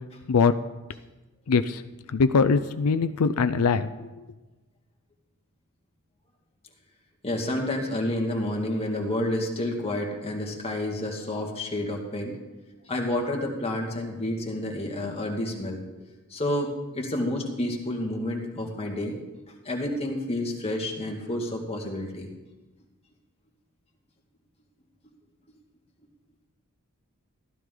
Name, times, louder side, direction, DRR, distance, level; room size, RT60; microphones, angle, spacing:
voice 1, 1.5-1.8 2.1-4.1, left 5 dB, 90° left, 11 dB, 0.5 m, -22 dB
voice 2, 7.2-12.4 12.9-15.8 16.3-19.2 19.7-22.3, left 1 dB, 30° left, 0 dB, 1.9 m, -29 dB
15.0 x 12.5 x 3.8 m, 1.1 s
head